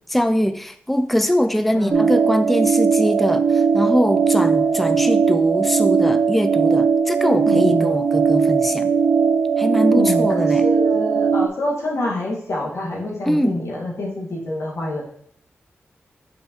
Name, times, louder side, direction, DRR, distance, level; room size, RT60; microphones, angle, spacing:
voice 1, 0.1-8.9 9.6-10.6 13.3-13.6, equal, 5° left, 9 dB, 0.4 m, -22 dB
voice 2, 1.7-2.1 7.4-7.9 9.9-15.0, left 2 dB, 75° left, -3 dB, 1.9 m, -26 dB
sound 1, 1.9-11.5, right 6 dB, 70° right, 0.9 m, -18 dB
6.2 x 5.3 x 3.1 m, 0.64 s
cardioid pair, 45°, 5 cm